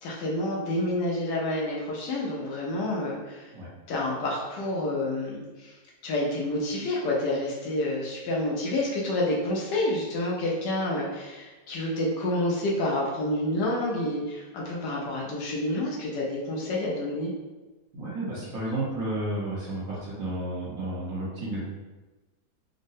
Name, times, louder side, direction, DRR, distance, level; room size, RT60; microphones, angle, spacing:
voice 1, 0.0-3.5 3.9-5.7 6.0-17.3, left 1 dB, 75° left, -3 dB, 1.3 m, -29 dB
voice 2, 17.9-21.6, right 1 dB, 60° right, -10 dB, 1.0 m, -32 dB
3.7 x 2.1 x 2.6 m, 1.2 s
omnidirectional pair, 1.9 m